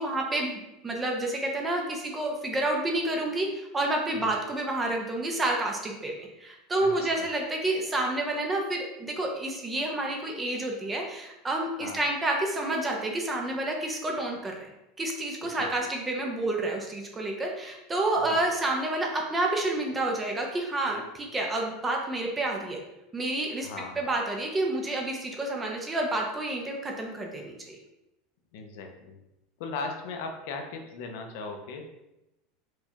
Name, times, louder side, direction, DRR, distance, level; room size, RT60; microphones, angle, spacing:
voice 1, 0.0-3.5 3.7-6.1 6.4-14.7 15.0-22.8 23.1-23.7 24.0-27.8, right 2 dB, 10° right, 1 dB, 0.4 m, -29 dB
voice 2, 6.8-7.3 11.7-12.0 15.5-15.7 18.2-18.4 23.6-24.0 28.5-29.2 29.6-31.9, left 4 dB, 60° left, 4 dB, 0.5 m, -38 dB
4.5 x 2.2 x 2.8 m, 0.91 s
supercardioid pair, 170°, 0 cm